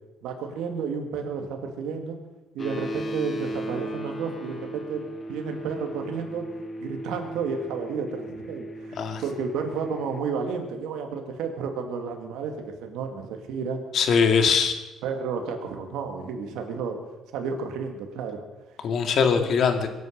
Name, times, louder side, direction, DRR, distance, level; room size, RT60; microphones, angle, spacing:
voice 1, 0.2-2.2 2.5-6.5 6.8-9.0 9.2-13.8 15.0-17.0 17.3-18.4, right 5 dB, 90° right, 4 dB, 2.2 m, -31 dB
sound 1, 2.6-10.2, right 1 dB, 30° left, 1.9 m, -36 dB
voice 2, 13.9-14.7 18.8-19.9, left 6 dB, 60° left, 5 dB, 2.2 m, -21 dB
22.5 x 9.5 x 6.6 m, 1.1 s
cardioid pair, 110°, 0 cm